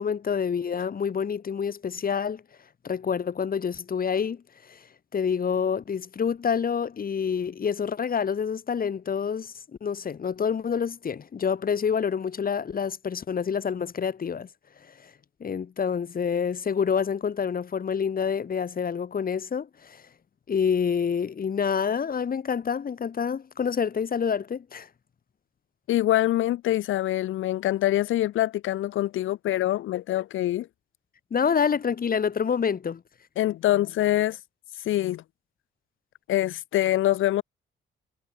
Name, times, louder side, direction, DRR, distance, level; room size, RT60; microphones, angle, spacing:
voice 1, 0.0-2.4 2.8-4.8 5.1-9.5 9.8-14.5 15.0-15.1 15.4-20.0 20.5-24.9 31.3-33.0, left 7 dB, 45° left, 7.1 m, -27 dB
voice 2, 25.9-30.7 33.4-34.4 34.8-35.2 36.3-37.4, left 14 dB, 85° left, 4.9 m, -24 dB
cardioid pair, 90°, 20 cm